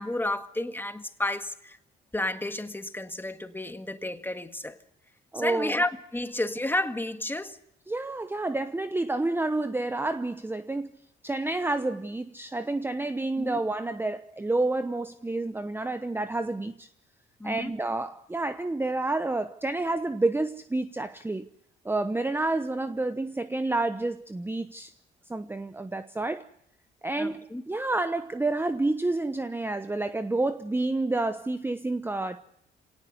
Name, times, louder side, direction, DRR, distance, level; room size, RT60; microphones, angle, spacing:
voice 1, 0.0-1.8 2.1-4.8 5.4-7.6 13.4-13.6 17.4-17.7 27.2-27.6, left 1 dB, 10° left, 1.7 m, -31 dB
voice 2, 5.3-5.8 7.9-10.9 11.2-16.9 17.4-21.5 21.8-24.9 25.3-26.5 27.0-32.4, right 2 dB, 10° right, 0.9 m, -29 dB
27.0 x 18.0 x 8.1 m
cardioid pair, 90°, 20 cm